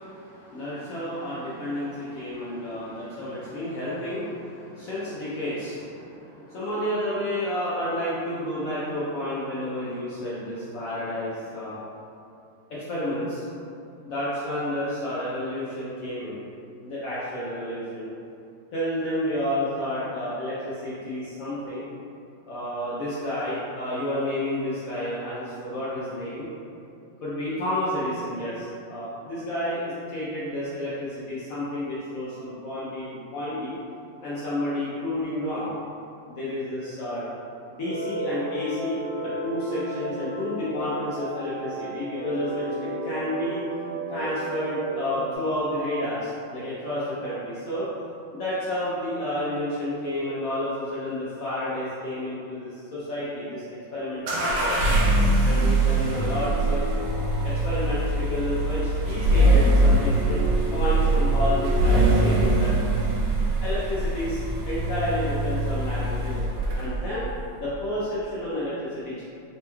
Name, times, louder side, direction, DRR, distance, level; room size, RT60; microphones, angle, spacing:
voice 1, 0.0-11.8 12.7-13.4 14.0-16.4 16.8-18.1 18.7-21.9 22.4-26.5 27.2-33.8 34.2-35.7 36.3-37.2 37.7-43.6 44.1-47.9 48.3-53.6 53.9-54.9 55.4-56.8 57.4-62.7 63.6-64.4 64.7-66.5 66.7-67.3 67.6-69.2, left 1 dB, 80° left, -9 dB, 0.7 m, -30 dB
sound 1, 37.8-45.4, right 1 dB, 30° left, 0.9 m, -33 dB
sound 2, 54.3-67.1, right 1 dB, 75° right, 1.2 m, -22 dB
sound 3, 56.1-63.0, right 4 dB, 55° left, 1.0 m, -37 dB
4.2 x 2.2 x 2.9 m, 2.6 s
omnidirectional pair, 2.2 m